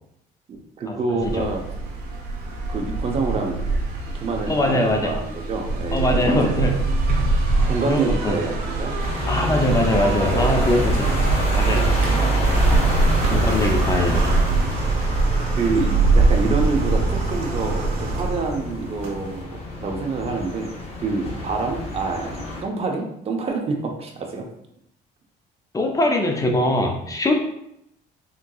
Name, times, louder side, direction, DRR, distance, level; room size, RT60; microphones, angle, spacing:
voice 1, 0.5-1.6 2.7-3.6 4.2-6.8 7.7-9.0 9.9-10.0 10.3-10.6 13.5-13.7 15.6-20.7 21.0-24.5, right 3 dB, 35° right, 2 dB, 0.6 m, -27 dB
sound 1, 1.2-19.4, right 3 dB, 70° right, 0.8 m, -23 dB
voice 2, 4.5-5.2 5.9-6.8 7.9-8.4 9.3-11.2 11.5-12.0 13.3-14.3 25.7-27.4, left 1 dB, 20° left, 2 dB, 0.5 m, -22 dB
sound 2, 9.0-22.6, equal, 35° left, 1.0 m, -27 dB
3.7 x 2.6 x 2.3 m, 0.76 s
cardioid pair, 110°, 17 cm